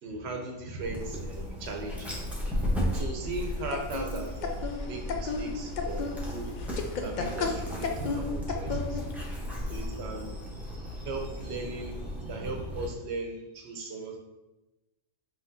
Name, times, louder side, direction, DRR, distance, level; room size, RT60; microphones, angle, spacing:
voice 1, 0.0-2.2 2.9-6.5 7.0-9.0 9.7-10.4 11.0-14.2, right 2 dB, 60° right, 3 dB, 0.9 m, -37 dB
Dog, 0.8-12.9, equal, ahead, 0.6 m, -36 dB
sound 1, 3.2-9.2, left 3 dB, 70° left, 0.4 m, -34 dB
5.6 x 3.1 x 2.6 m, 1.0 s
omnidirectional pair, 1.3 m